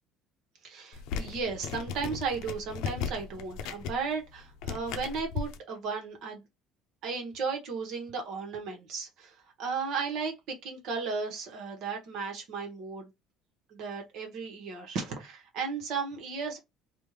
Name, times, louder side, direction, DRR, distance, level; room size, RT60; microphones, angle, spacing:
voice 1, 0.6-6.4 7.0-13.1 13.7-16.6, right 5 dB, 60° right, 1.2 m, -35 dB
sound 1, 0.9-5.6, left 6 dB, 75° left, 0.6 m, -37 dB
3.5 x 2.4 x 3.1 m
cardioid pair, 130°, 0 cm